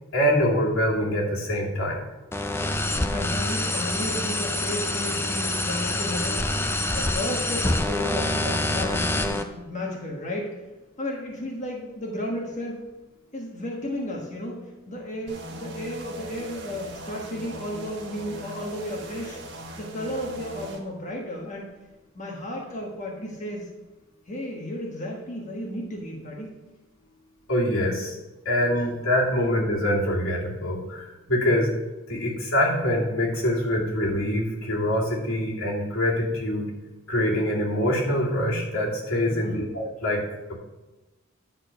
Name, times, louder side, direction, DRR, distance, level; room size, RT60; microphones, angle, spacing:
voice 1, 0.1-2.0 27.5-28.2 28.4-31.7 32.1-36.7 37.1-40.2 40.5-40.6, left 1 dB, 85° left, -4 dB, 2.8 m, -24 dB
sound 1, 2.3-9.4, left 1 dB, 10° left, 0.5 m, -26 dB
voice 2, 2.6-6.5 6.9-10.6 11.0-12.9 13.3-21.7 22.1-23.7 24.3-26.5 39.3-39.6, left 1 dB, 35° left, -2 dB, 1.4 m, -33 dB
sound 2, 15.3-20.8, right 1 dB, 55° right, 1.4 m, -40 dB
10.0 x 4.4 x 6.9 m, 1.1 s
head